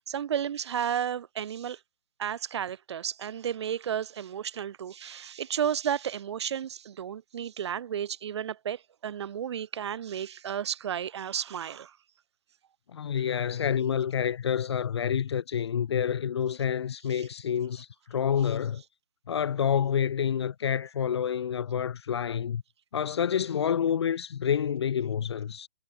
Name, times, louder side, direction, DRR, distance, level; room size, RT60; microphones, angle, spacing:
voice 1, 0.0-1.8 2.2-12.0 17.1-17.3, right 9 dB, 25° right, 5.4 m, -33 dB
voice 2, 12.9-18.8 19.3-22.6 22.9-25.7, left 8 dB, 25° left, 2.5 m, -28 dB
hypercardioid pair, 170°, 31 cm